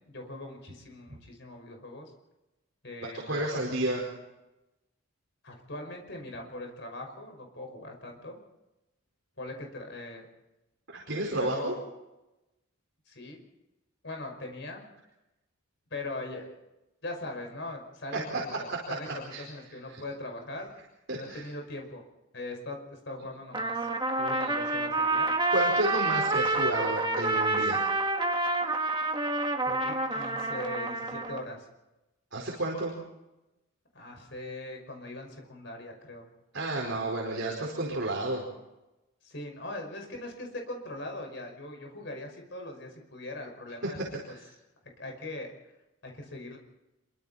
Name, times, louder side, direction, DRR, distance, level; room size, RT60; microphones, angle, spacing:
voice 1, 0.0-2.1 2.8-3.6 5.4-8.4 9.4-10.2 11.3-11.8 13.1-13.4 14.0-14.8 15.9-16.6 17.0-20.7 21.2-22.0 22.3-23.9 24.2-25.3 29.6-31.7 33.9-36.3 39.2-44.0 44.3-44.4 45.0-45.5 46.0-46.6, left 2 dB, 55° left, 2 dB, 5.5 m, -40 dB
voice 2, 3.1-4.0 10.9-11.8 18.1-18.2 19.0-19.4 19.9-20.0 21.1-21.4 25.5-27.9 32.3-32.9 36.5-38.4 44.3-44.4, right 1 dB, 60° right, -2 dB, 4.7 m, -31 dB
Trumpet, 23.5-31.4, right 2 dB, 20° right, 1.6 m, -28 dB
26.5 x 23.5 x 4.3 m, 0.99 s
head